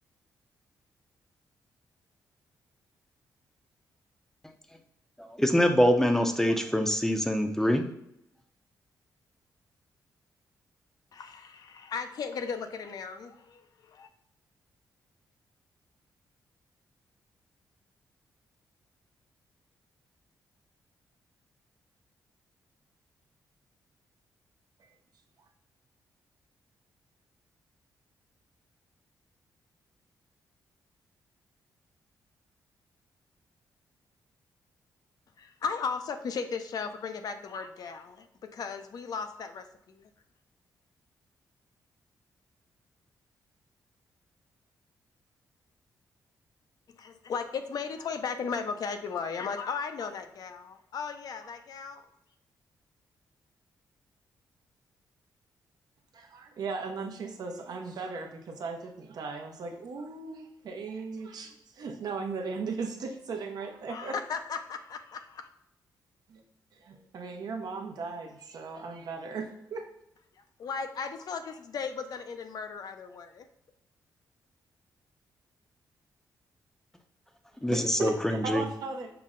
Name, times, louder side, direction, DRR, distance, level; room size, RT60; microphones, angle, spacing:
voice 1, 5.4-7.9 77.6-78.6, equal, 5° left, 6 dB, 0.5 m, -24 dB
voice 2, 11.1-14.1 35.4-40.1 47.0-52.0 63.9-65.5 70.6-73.5, left 5 dB, 60° left, 8 dB, 0.5 m, -36 dB
voice 3, 56.1-64.2 66.3-66.4 66.7-69.9 77.7-79.1, right 4 dB, 70° right, 4 dB, 0.7 m, -37 dB
5.7 x 2.1 x 3.7 m, 0.79 s
cardioid pair, 85°, 7 cm